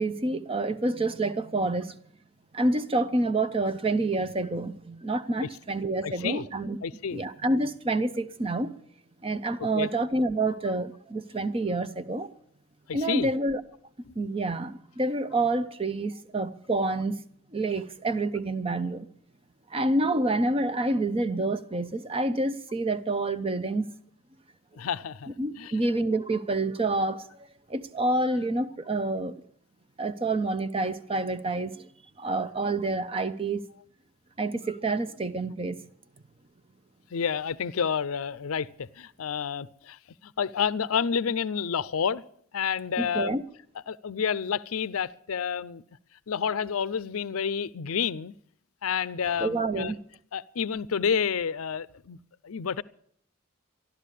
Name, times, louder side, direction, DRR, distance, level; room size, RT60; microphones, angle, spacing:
voice 1, 0.0-2.0 2.5-6.8 7.1-8.7 9.2-12.3 12.9-13.6 14.2-17.2 17.5-19.1 19.7-23.9 25.4-27.3 27.7-29.4 30.0-31.9 32.2-33.7 34.4-35.8 43.0-43.4 49.4-50.0, right 2 dB, 25° right, 0.6 m, -28 dB
voice 2, 6.0-6.5 6.8-7.2 9.7-9.9 12.9-13.3 14.1-14.2 24.7-25.3 25.6-25.7 37.1-38.7 39.0-42.2 42.5-43.4 43.9-45.8 46.3-48.3 48.8-49.9 50.3-52.2 52.4-52.8, left 7 dB, 85° left, 0.5 m, -29 dB
13.5 x 12.0 x 8.3 m
head